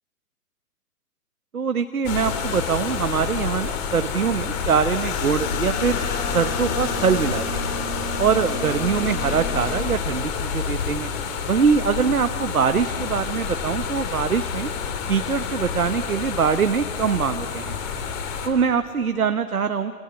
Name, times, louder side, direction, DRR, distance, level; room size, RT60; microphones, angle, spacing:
voice 1, 1.5-6.0 6.3-7.7 8.2-11.1 11.5-14.7 15.1-17.8 18.4-20.0, right 6 dB, 65° right, 9 dB, 1.3 m, -23 dB
sound 1, 2.0-18.5, left 6 dB, 25° left, 3.1 m, -28 dB
sound 2, 5.3-9.8, right 2 dB, 50° left, 4.8 m, -35 dB
28.5 x 27.5 x 7.1 m, 2.3 s
figure-of-eight pair, 130°, 46 cm